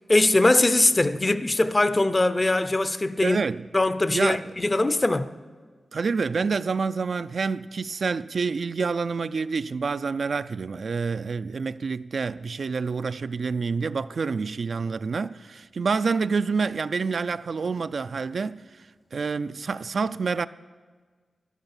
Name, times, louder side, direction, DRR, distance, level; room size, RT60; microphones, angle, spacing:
voice 1, 0.1-3.4 3.7-5.3, left 2 dB, 25° left, 0.5 m, -21 dB
voice 2, 3.2-3.7 4.1-4.4 5.9-18.6 19.1-20.5, right 4 dB, 60° right, 0.3 m, -27 dB
13.5 x 11.5 x 7.1 m
wide cardioid pair, 135°, 0 cm